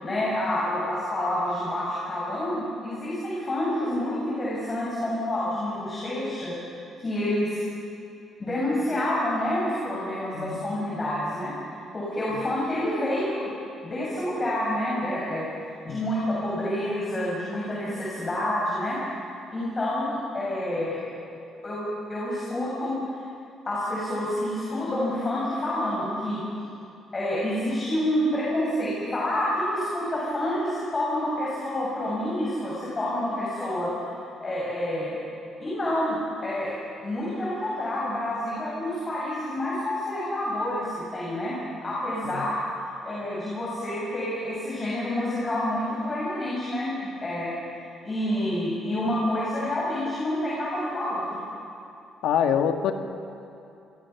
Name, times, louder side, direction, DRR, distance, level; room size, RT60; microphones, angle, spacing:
voice 1, 0.0-6.5 7.0-7.6 8.4-11.5 11.9-13.5 13.8-15.5 15.8-19.0 19.5-21.1 21.6-22.9 23.7-26.4 27.1-33.9 34.4-35.2 35.6-36.2 36.4-36.8 37.0-42.6 43.0-47.5 48.0-51.4, left 1 dB, 30° left, -6 dB, 6.9 m, -28 dB
voice 2, 10.3-10.7 15.9-16.0 42.2-42.5 52.2-52.9, left 8 dB, 80° left, 6 dB, 1.7 m, -25 dB
27.0 x 23.0 x 6.0 m, 2.7 s
cardioid pair, 105°, 0 cm